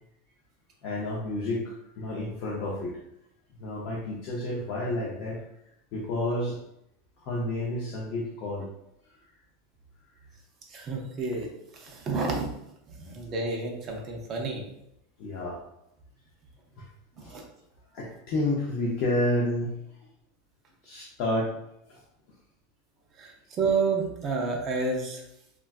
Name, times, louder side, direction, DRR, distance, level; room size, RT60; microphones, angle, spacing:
voice 1, 0.8-3.0 3.6-5.4 5.9-6.6 7.2-8.7 15.2-15.6 16.8-16.9 17.2-17.3 17.9-19.8 20.8-21.5 21.9-22.0, left 1 dB, 40° left, -3 dB, 0.5 m, -30 dB
voice 2, 10.7-11.5 11.7-12.5 13.0-14.6 17.3-17.4 23.2-25.2, right 4 dB, 25° right, 1 dB, 0.4 m, -30 dB
3.6 x 2.2 x 2.3 m, 0.80 s
supercardioid pair, 175°, 0 cm